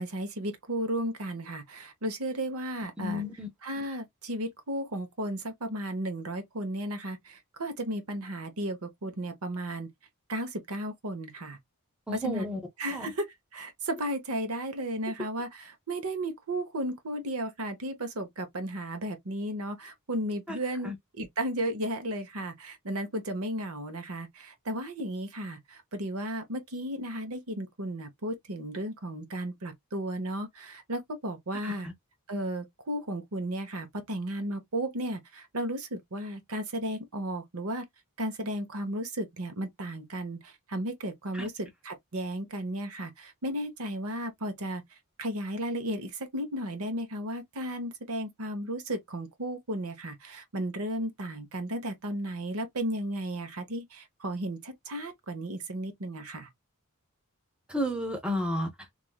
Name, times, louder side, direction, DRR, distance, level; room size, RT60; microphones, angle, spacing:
voice 1, 0.0-3.2 3.6-9.9 10.3-11.6 12.2-12.5 12.8-13.3 13.5-31.9 32.3-37.8 38.2-44.8 45.2-56.5, right 1 dB, 70° right, 0.9 m, -34 dB
voice 2, 3.0-3.5 12.1-12.6 12.9-13.1 20.5-20.6 20.8-21.0 31.6-31.9 41.3-41.5 57.7-58.7, left 1 dB, 5° right, 0.7 m, -32 dB
3.1 x 2.5 x 2.2 m
head